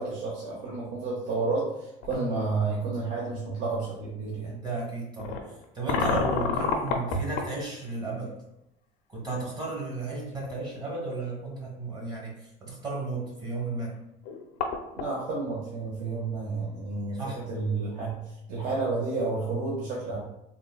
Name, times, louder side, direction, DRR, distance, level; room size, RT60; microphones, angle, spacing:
voice 1, 0.0-4.5 15.0-20.2, right 3 dB, 55° right, -4 dB, 0.8 m, -31 dB
sound 1, 2.0-2.2 3.0-3.1 5.2-7.5 10.0-10.1 10.4-10.5 14.0-14.1 14.2-15.1, left 5 dB, 75° left, 0.5 m, -29 dB
voice 2, 4.5-5.4 5.7-8.3 9.1-14.0 17.2-17.4, right 3 dB, 25° right, -3 dB, 1.2 m, -33 dB
3.6 x 2.2 x 2.2 m, 0.85 s
supercardioid pair, 125°, 17 cm